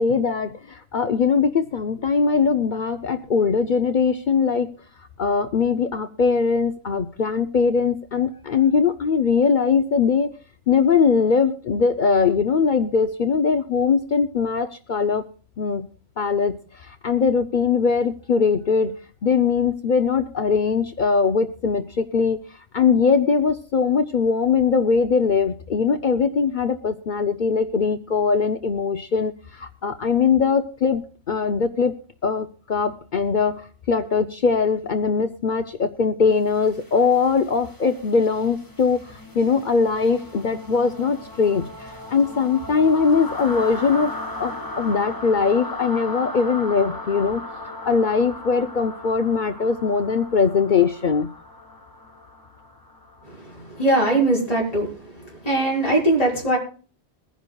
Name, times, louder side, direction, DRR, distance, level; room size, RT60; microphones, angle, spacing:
voice 1, 0.0-4.7 5.2-10.3 10.7-15.3 15.6-15.9 16.2-19.0 19.2-22.4 22.7-31.9 32.2-44.1 44.4-47.4 47.9-51.3, left 5 dB, 50° left, 10 dB, 0.7 m, -21 dB
sound 1, 36.4-54.2, left 2 dB, 20° left, 1.5 m, -37 dB
voice 2, 53.3-54.9 55.2-56.6, right 1 dB, 35° left, -4 dB, 4.2 m, -21 dB
22.0 x 10.5 x 2.3 m, 0.39 s
omnidirectional pair, 1.1 m